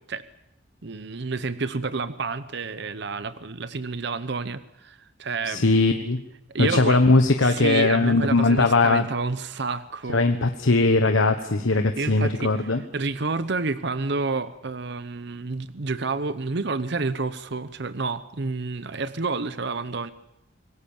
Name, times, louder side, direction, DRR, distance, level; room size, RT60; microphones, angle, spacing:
voice 1, 0.8-5.7 6.5-7.0 7.4-10.2 12.0-20.1, right 4 dB, 60° right, 13 dB, 0.8 m, -29 dB
voice 2, 5.5-6.2 6.6-9.0 10.1-12.8, left 3 dB, 85° left, 7 dB, 1.2 m, -20 dB
26.5 x 18.5 x 7.3 m, 0.82 s
head